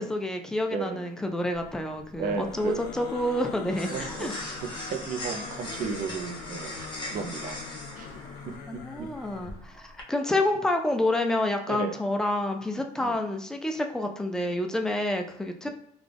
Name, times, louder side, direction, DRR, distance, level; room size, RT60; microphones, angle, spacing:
voice 1, 0.0-4.3 8.7-15.7, left 1 dB, 5° left, 4 dB, 0.4 m, -28 dB
voice 2, 0.7-1.0 2.2-2.8 3.9-4.1 4.9-8.1 8.7-9.1 11.7-11.9 13.0-13.1 15.6-15.7, right 6 dB, 55° right, 5 dB, 0.6 m, -34 dB
sound 1, 1.5-10.0, left 1 dB, 25° left, 1.0 m, -41 dB
sound 2, 2.3-9.6, left 5 dB, 85° left, 0.5 m, -42 dB
3.7 x 2.4 x 3.4 m, 0.69 s
cardioid pair, 110°, 17 cm